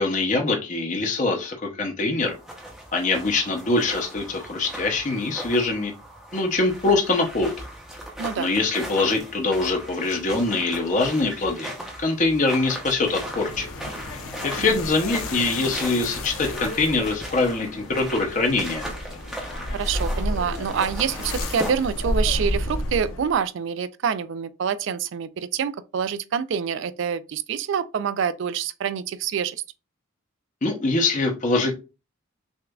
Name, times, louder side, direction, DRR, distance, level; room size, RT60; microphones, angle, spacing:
voice 1, 0.0-2.3 2.9-5.9 6.3-7.6 8.4-13.7 14.4-18.9 30.6-31.7, left 3 dB, 35° left, 0.7 m, -23 dB
sound 1, 2.2-21.7, right 1 dB, ahead, 0.7 m, -38 dB
voice 2, 8.2-8.5 14.6-14.8 19.7-29.6, right 7 dB, 60° right, 0.3 m, -26 dB
sound 2, 13.0-23.4, left 1 dB, 85° left, 0.7 m, -31 dB
6.2 x 2.4 x 2.3 m
head